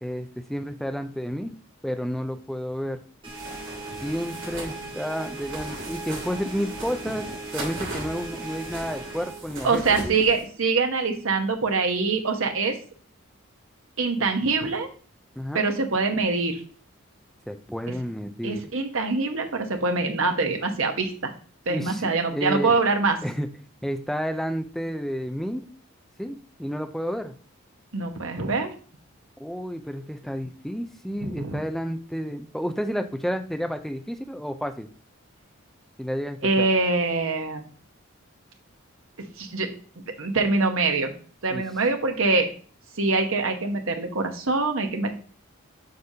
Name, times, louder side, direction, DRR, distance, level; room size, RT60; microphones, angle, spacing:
voice 1, 0.0-1.5 1.8-3.0 4.0-7.3 7.5-10.2 14.2-14.3 15.4-15.6 17.5-18.6 21.7-22.8 23.2-23.5 23.8-25.6 26.2-27.3 29.4-34.9 36.0-36.7 41.5-41.6, equal, ahead, 7 dB, 0.4 m, -31 dB
sound 1, 3.2-9.4, right 3 dB, 25° right, 1.7 m, -38 dB
sound 2, 3.4-10.4, right 1 dB, 60° right, 3.1 m, -39 dB
voice 2, 9.6-12.8 14.0-14.9 15.5-16.6 18.4-21.3 21.7-23.2 27.9-28.7 31.2-31.6 36.4-37.6 39.2-39.7 40.1-41.1 41.4-42.5 43.0-45.2, right 3 dB, 75° right, 5 dB, 1.1 m, -24 dB
7.8 x 5.2 x 2.8 m, 0.41 s
head